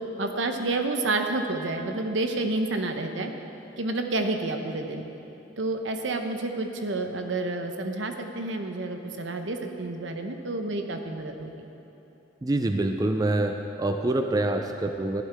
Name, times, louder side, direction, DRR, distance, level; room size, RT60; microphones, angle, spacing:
voice 1, 0.0-3.3 3.8-5.0 5.6-11.5, right 2 dB, 80° right, 5 dB, 0.9 m, -29 dB
voice 2, 12.4-15.2, right 2 dB, 20° right, 5 dB, 0.4 m, -26 dB
14.5 x 11.0 x 3.5 m, 3.0 s
head